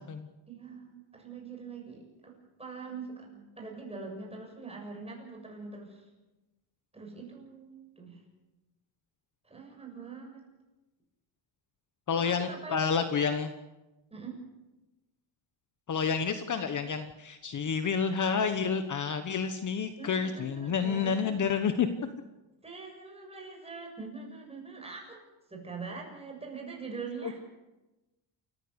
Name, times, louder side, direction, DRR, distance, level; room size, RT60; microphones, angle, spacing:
voice 1, 0.5-2.3 2.6-6.1 6.9-8.2 9.4-10.4 12.1-12.9 14.1-14.4 20.0-21.7 22.6-25.2 25.5-27.4, right 4 dB, 15° right, -1 dB, 7.1 m, -43 dB
voice 2, 12.1-13.5 15.9-21.9 27.2-27.3, left 6 dB, 40° left, 9 dB, 1.2 m, -29 dB
28.5 x 15.0 x 8.1 m, 1.1 s
cardioid pair, 150°, 46 cm